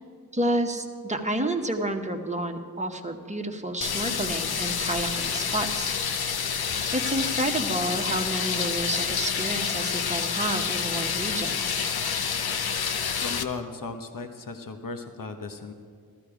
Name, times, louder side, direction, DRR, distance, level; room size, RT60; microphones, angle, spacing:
voice 1, 0.3-5.9 6.2-6.3 6.9-11.7, right 1 dB, 20° right, 4 dB, 1.2 m, -30 dB
sound 1, 3.8-13.4, left 6 dB, 85° left, 0.7 m, -28 dB
voice 2, 13.2-15.7, left 4 dB, 60° left, 6 dB, 1.1 m, -36 dB
14.5 x 14.0 x 5.0 m, 2.1 s
wide cardioid pair, 70°, 37 cm